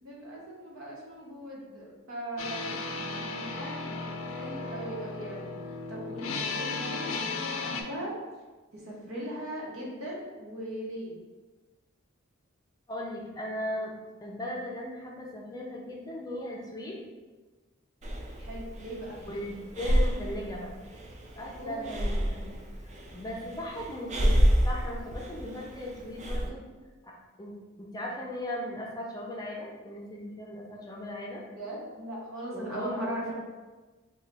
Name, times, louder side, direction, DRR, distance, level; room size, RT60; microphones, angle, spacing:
voice 1, 0.0-8.1 8.7-11.2 18.4-19.2 21.6-21.9 31.6-33.3, right 1 dB, 80° right, -4 dB, 1.1 m, -39 dB
sound 1, 2.4-7.8, left 4 dB, 75° left, 0.4 m, -35 dB
voice 2, 12.9-13.9 14.2-17.0 19.3-20.7 21.4-22.5 22.8-26.6 27.0-27.1 27.4-31.4 32.5-33.2, left 1 dB, 20° left, -2 dB, 0.5 m, -38 dB
Breathing, 18.0-26.5, equal, 35° right, 0.4 m, -29 dB
3.2 x 2.3 x 3.9 m, 1.3 s
head